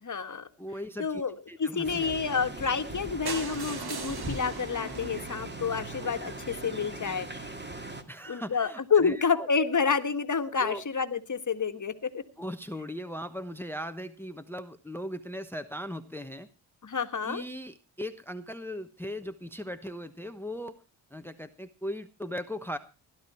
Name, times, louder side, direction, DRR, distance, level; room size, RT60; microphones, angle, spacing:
voice 1, 0.0-0.5 1.0-7.5 8.3-12.2 16.8-17.4, left 5 dB, 35° left, 9 dB, 1.7 m, -29 dB
voice 2, 0.6-1.2 1.5-2.1 8.1-9.5 10.6-10.8 12.4-16.5 17.2-20.8 21.1-22.8, equal, 5° left, 11 dB, 1.1 m, -38 dB
sound 1, 1.8-8.0, right 2 dB, 20° right, 2.4 m, -40 dB
sound 2, 3.3-7.1 7.8-7.9 8.1-8.2 8.5-8.6 8.8-8.9, right 4 dB, 50° right, 2.0 m, -41 dB
17.0 x 11.5 x 4.4 m, 0.32 s
cardioid pair, 75°, 49 cm